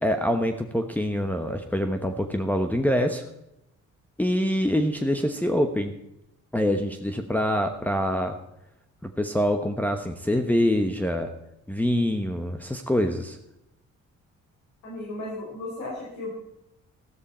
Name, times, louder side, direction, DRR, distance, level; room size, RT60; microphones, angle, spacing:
voice 1, 0.0-3.2 4.2-5.9 6.5-8.4 9.0-11.3 11.7-13.4, equal, 5° left, 3 dB, 1.1 m, -25 dB
voice 2, 14.8-16.3, left 2 dB, 70° left, -5 dB, 5.7 m, -35 dB
14.0 x 13.0 x 4.4 m, 0.84 s
cardioid pair, 90°, 30 cm